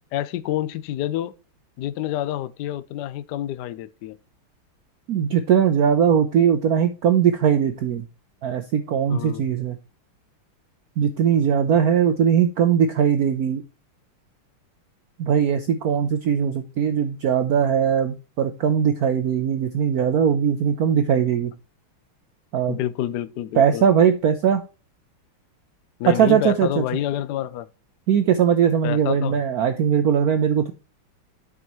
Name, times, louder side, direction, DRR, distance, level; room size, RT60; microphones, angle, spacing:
voice 1, 0.1-1.3 1.8-4.2 9.1-9.5 22.7-23.8 26.0-27.7 28.8-29.4, left 12 dB, 75° left, 0.9 m, -28 dB
voice 2, 5.1-8.0 8.4-9.8 11.0-13.6 15.2-21.5 22.5-22.8 23.6-24.6 26.2-26.8 28.1-30.7, right 8 dB, 85° right, 0.8 m, -20 dB
11.0 x 4.8 x 3.0 m
omnidirectional pair, 2.4 m